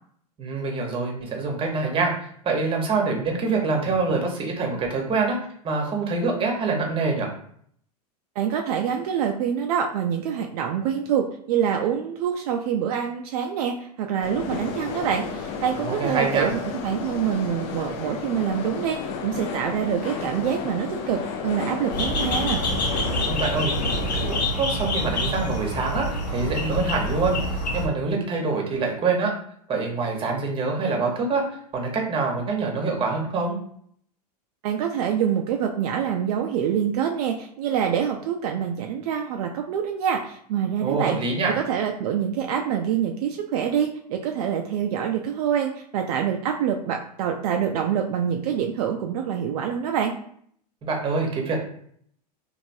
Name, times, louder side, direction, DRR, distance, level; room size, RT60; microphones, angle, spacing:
voice 1, 0.4-5.4 5.6-7.3 15.8-16.5 23.3-27.4 27.7-29.3 29.7-31.4 31.7-33.6 40.8-41.5 50.8-51.6, right 4 dB, 25° right, 1 dB, 0.9 m, -25 dB
voice 2, 8.4-22.6 34.6-41.2 41.6-50.1, right 8 dB, 65° right, 3 dB, 0.4 m, -26 dB
sound 1, 14.2-24.5, left 6 dB, 50° left, 0.5 m, -32 dB
sound 2, 21.9-27.9, left 1 dB, 85° left, 0.8 m, -26 dB
3.2 x 2.5 x 2.6 m, 0.63 s
hypercardioid pair, 110°, 21 cm